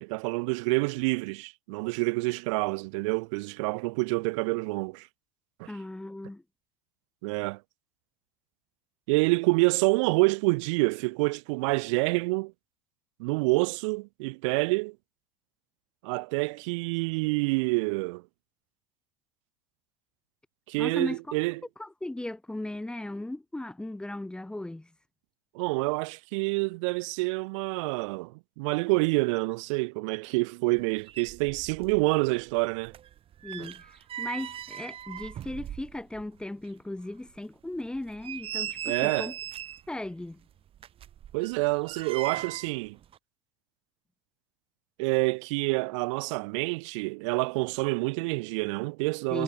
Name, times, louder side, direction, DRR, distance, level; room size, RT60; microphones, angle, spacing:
voice 1, 0.0-5.1 5.6-5.7 7.2-7.6 9.1-12.5 13.2-15.0 16.0-18.2 20.7-21.6 25.5-32.9 33.6-33.7 38.9-39.3 41.3-43.0 45.0-49.4, right 27 dB, 70° right, 0.7 m, -27 dB
voice 2, 5.7-6.4 20.8-21.4 21.8-24.9 33.4-39.3 39.9-40.4 49.3-49.4, left 1 dB, 5° left, 1.8 m, -37 dB
sound 1, 30.8-30.9 31.1-32.1 32.3-36.3 36.6-36.7 37.3-37.4 37.9-39.9 40.7-42.7 43.0-43.2, right 10 dB, 35° right, 3.3 m, -38 dB
supercardioid pair, 125°, 16 cm